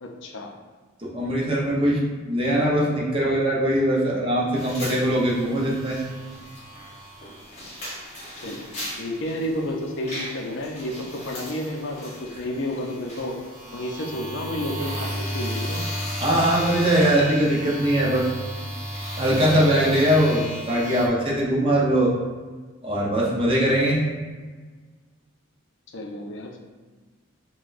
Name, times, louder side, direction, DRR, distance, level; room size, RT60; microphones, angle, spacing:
voice 1, 0.0-0.5 3.2-3.3 8.4-13.4 13.7-15.8 25.9-26.6, left 1 dB, 60° left, 1 dB, 0.5 m, -31 dB
voice 2, 1.0-6.0 16.2-18.3 19.2-22.1 22.8-24.0, right 1 dB, 25° right, -5 dB, 0.7 m, -21 dB
sound 1, 4.6-21.1, equal, 30° left, 1.0 m, -35 dB
5.7 x 2.2 x 2.5 m, 1.4 s
head